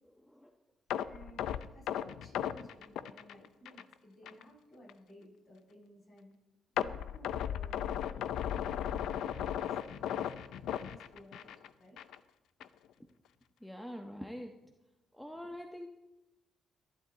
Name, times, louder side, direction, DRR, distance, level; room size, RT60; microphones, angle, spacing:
sound 1, 0.9-3.9 4.3-4.4 4.9-5.0 6.8-11.7 12.0-12.2 12.6-12.7, left 10 dB, 80° left, 0.6 m, -36 dB
voice 1, 1.0-6.3 6.7-8.4 8.9-11.5 11.8-12.0, equal, 40° left, -1 dB, 6.7 m, -56 dB
voice 2, 13.6-14.5 15.2-15.9, equal, 5° left, 4 dB, 1.1 m, -44 dB
22.0 x 11.5 x 4.1 m, 0.99 s
cardioid pair, 90°, 0 cm